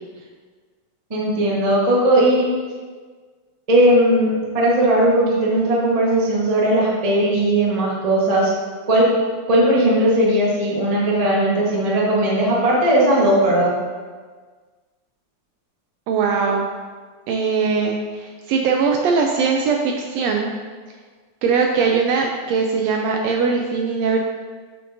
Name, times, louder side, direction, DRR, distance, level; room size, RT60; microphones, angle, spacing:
voice 1, 1.1-2.5 3.7-8.5 8.9-9.1 9.5-13.7, right 1 dB, 50° right, -5 dB, 0.4 m, -17 dB
voice 2, 16.1-16.6 17.3-20.5 21.4-24.2, right 5 dB, 80° right, 2 dB, 1.5 m, -20 dB
7.6 x 7.4 x 2.7 m, 1.5 s
omnidirectional pair, 3.4 m